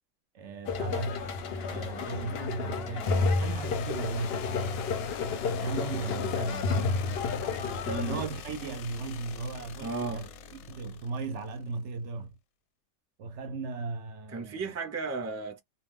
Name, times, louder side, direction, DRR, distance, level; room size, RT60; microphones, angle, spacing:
voice 1, 0.3-1.2 1.7-4.7 5.4-6.7 7.9-10.3 10.7-12.4 13.2-14.7, right 4 dB, 65° right, 0.8 m, -37 dB
sound 1, 0.7-8.3, left 4 dB, 60° left, 0.7 m, -31 dB
sound 2, 3.0-11.8, left 6 dB, 90° left, 1.0 m, -44 dB
voice 2, 7.8-8.2 9.8-10.2 14.3-15.6, right 4 dB, 20° right, 0.4 m, -34 dB
2.4 x 2.2 x 3.4 m
omnidirectional pair, 1.4 m